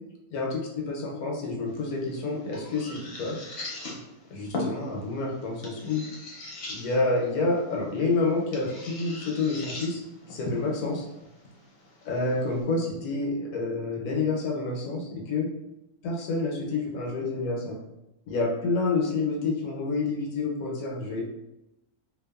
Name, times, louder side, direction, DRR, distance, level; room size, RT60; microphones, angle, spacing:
voice 1, 0.3-3.4 4.3-6.0 6.7-10.0 10.3-10.9 12.0-15.5 16.0-17.8 18.3-21.2, left 3 dB, 85° left, 0 dB, 1.2 m, -28 dB
sound 1, 1.7-12.6, left 2 dB, 55° left, 0.7 m, -40 dB
2.8 x 2.2 x 2.3 m, 0.90 s
omnidirectional pair, 1.6 m